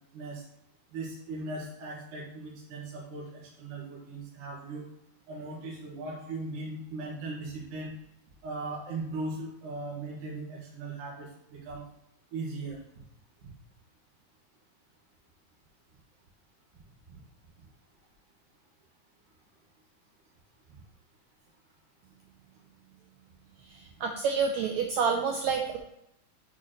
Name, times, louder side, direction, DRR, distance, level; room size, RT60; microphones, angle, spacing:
voice 1, 0.1-0.4 0.9-4.8 5.3-7.9 8.4-11.8 12.3-12.8 20.7-20.8, right 2 dB, 65° right, -5 dB, 3.2 m, -38 dB
voice 2, 24.0-25.8, right 5 dB, 80° right, 2 dB, 1.6 m, -28 dB
8.4 x 6.7 x 3.0 m, 0.82 s
omnidirectional pair, 4.0 m